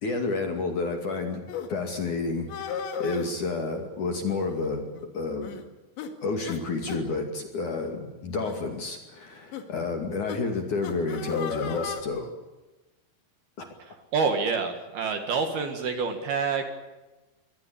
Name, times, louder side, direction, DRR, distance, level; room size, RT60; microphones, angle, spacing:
voice 1, 0.0-1.4 1.7-2.7 3.0-4.9 5.1-5.5 6.2-12.3 13.6-13.7, left 3 dB, 45° left, 4 dB, 3.1 m, -30 dB
sound 1, 1.5-1.7 2.5-3.3 4.3-4.6 4.9-5.0 5.4-5.6 6.0-6.1 6.5-6.6 6.9-7.0 7.7-7.9 8.4-8.6 9.5-9.6 10.3-10.4 10.8-12.0, left 6 dB, 65° left, 4.1 m, -34 dB
voice 2, 13.9-16.6, right 5 dB, 60° right, 6 dB, 3.1 m, -27 dB
23.5 x 20.0 x 8.6 m, 1.1 s
omnidirectional pair, 5.9 m